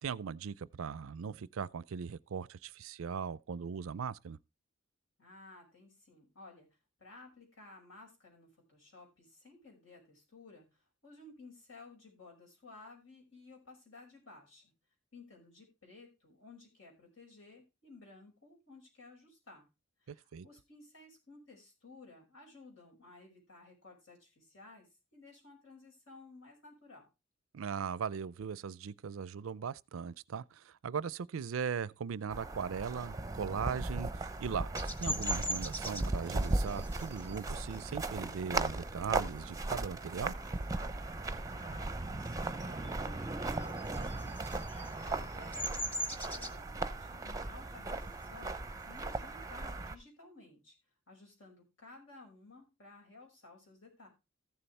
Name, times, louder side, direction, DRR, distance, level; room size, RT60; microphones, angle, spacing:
voice 1, 0.0-4.4 20.1-20.5 27.5-40.3, right 6 dB, 80° right, 0.4 m, -39 dB
voice 2, 5.2-6.7 7.0-10.7 11.0-14.7 15.1-19.7 20.0-27.1 41.5-48.5 48.9-50.7 51.1-54.1, left 3 dB, 80° left, 5.6 m, -56 dB
sound 1, 32.3-49.9, right 2 dB, 15° right, 0.6 m, -37 dB
Bird vocalization bird call bird song, 34.8-40.0 40.4-40.7 41.0-42.3 42.5-49.9, equal, 10° left, 1.3 m, -42 dB
14.5 x 7.0 x 3.3 m
head